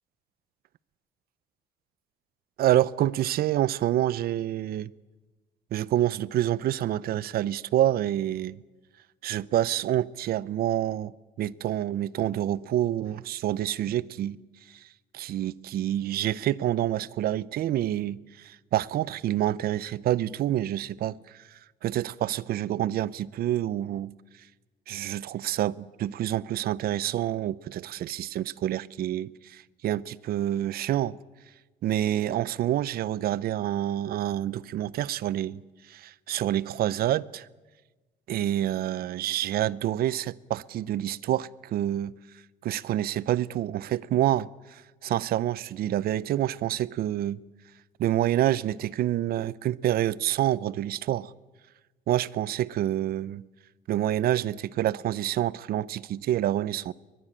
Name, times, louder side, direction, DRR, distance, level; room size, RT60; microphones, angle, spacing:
voice 1, 2.6-4.9 5.7-8.6 9.2-14.4 14.7-14.8 15.1-24.1 24.9-31.2 31.8-37.5 38.3-42.1 42.6-47.4 48.0-51.3 52.1-53.4 53.9-56.9, right 12 dB, 65° right, 0.7 m, -27 dB
22.5 x 21.5 x 8.9 m
cardioid pair, 110°, 17 cm